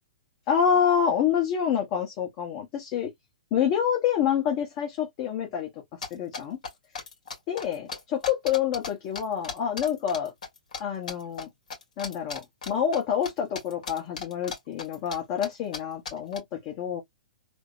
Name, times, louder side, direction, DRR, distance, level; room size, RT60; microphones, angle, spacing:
voice 1, 0.5-3.1 3.5-5.7 6.1-6.6 7.5-10.3 10.8-11.5 12.0-17.0, left 8 dB, 40° left, 0.9 m, -27 dB
sound 1, 6.0-8.9 9.1-10.8 11.1-11.4 11.7-13.3 13.6-15.2 15.4-15.5 15.7-16.4, left 5 dB, 75° left, 1.6 m, -36 dB
3.5 x 2.1 x 2.4 m
hypercardioid pair, 130°, 4 cm